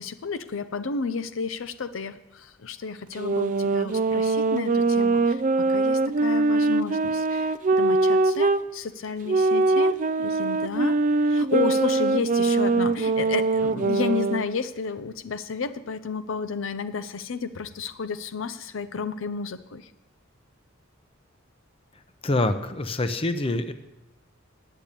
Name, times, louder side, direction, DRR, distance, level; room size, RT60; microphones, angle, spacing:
voice 1, 0.0-11.0 11.2-19.9, left 5 dB, 75° left, 11 dB, 0.6 m, -32 dB
sound 1, 3.1-8.6 9.3-14.5, right 3 dB, 40° right, 0.4 m, -22 dB
voice 2, 22.2-23.7, left 2 dB, 30° left, 9 dB, 0.7 m, -25 dB
10.0 x 6.8 x 8.9 m, 0.98 s
head